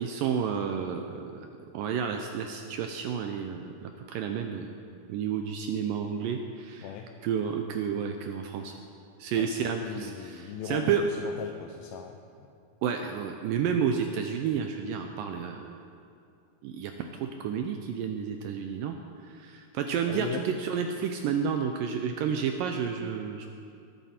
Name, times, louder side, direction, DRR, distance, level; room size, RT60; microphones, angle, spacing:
voice 1, 0.0-1.5 1.7-4.7 5.1-6.9 7.2-8.7 9.2-11.0 12.8-15.8 16.6-19.0 19.2-23.5, right 7 dB, 85° right, 5 dB, 1.9 m, -31 dB
voice 2, 9.4-12.2 20.1-20.4, left 8 dB, 80° left, 3 dB, 2.3 m, -38 dB
19.5 x 9.1 x 4.3 m, 2.4 s
omnidirectional pair, 4.6 m